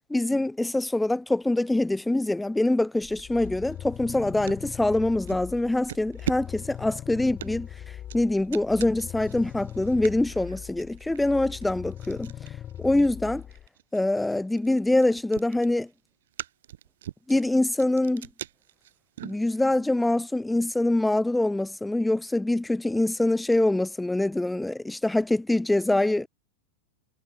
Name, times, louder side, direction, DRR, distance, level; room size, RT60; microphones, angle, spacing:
voice 1, 0.1-7.7 8.1-12.3 12.8-13.4 13.9-15.9 17.3-18.3 19.2-26.3, left 2 dB, 5° left, 0.5 m, -24 dB
sound 1, 3.0-13.7, left 11 dB, 30° left, 1.2 m, -40 dB
sound 2, 3.1-4.7 5.3-5.5 5.9-19.9, right 12 dB, 60° right, 3.6 m, -41 dB
figure-of-eight pair, 90°, 0 cm